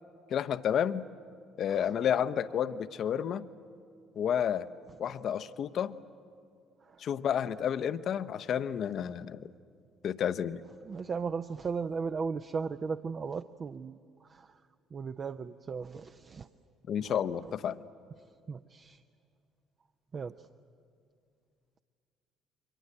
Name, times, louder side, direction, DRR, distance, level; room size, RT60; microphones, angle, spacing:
voice 1, 0.3-1.0 1.6-3.5 4.2-4.7 5.0-6.0 7.0-9.5 10.0-10.6 16.9-17.8, left 9 dB, 55° left, 13 dB, 0.8 m, -30 dB
voice 2, 10.8-14.0 14.3-14.5 14.9-16.5 18.5-19.0 20.1-20.3, right 5 dB, 40° right, 9 dB, 0.7 m, -36 dB
29.0 x 23.5 x 7.9 m, 2.3 s
figure-of-eight pair, 50°, 0 cm